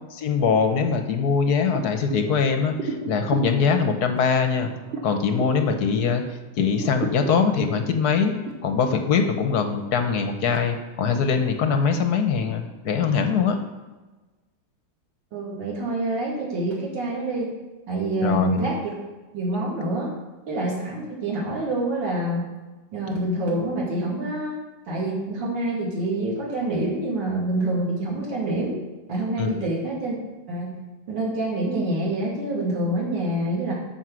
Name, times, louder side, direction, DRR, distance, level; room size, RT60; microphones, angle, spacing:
voice 1, 0.2-4.7 5.0-6.2 6.6-8.3 8.6-13.6 18.2-18.6 29.4-29.5, left 6 dB, 60° left, 6 dB, 1.1 m, -22 dB
sound 1, 1.7-6.3 6.7-8.5, right 2 dB, 35° right, 1.3 m, -34 dB
voice 2, 15.3-17.5 17.9-18.9 19.3-20.1 20.5-22.5 22.9-24.6 24.9-28.8 29.1-30.1 30.5-30.7 31.1-33.7, right 2 dB, 55° right, -4 dB, 3.1 m, -26 dB
12.5 x 4.6 x 6.2 m, 1.2 s
omnidirectional pair, 2.4 m